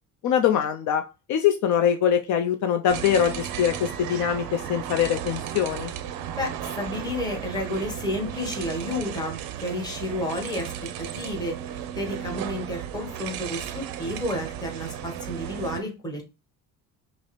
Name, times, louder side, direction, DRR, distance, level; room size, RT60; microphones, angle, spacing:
voice 1, 0.2-1.0 1.3-5.9, left 9 dB, 60° left, 5 dB, 0.5 m, -23 dB
sound 1, 2.9-15.8, right 10 dB, 90° right, 0.5 m, -35 dB
voice 2, 6.4-16.4, left 1 dB, 10° left, 0 dB, 1.0 m, -31 dB
5.3 x 2.0 x 3.0 m, 0.29 s
cardioid pair, 155°, 33 cm